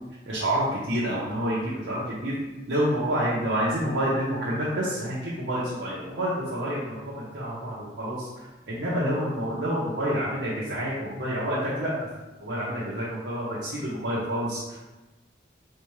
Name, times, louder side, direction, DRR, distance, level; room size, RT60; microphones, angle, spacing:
voice 1, 0.3-1.6 1.8-2.3 2.7-11.9 12.4-14.8, equal, 85° right, -8 dB, 0.9 m, -28 dB
4.0 x 3.4 x 3.2 m, 1.1 s
head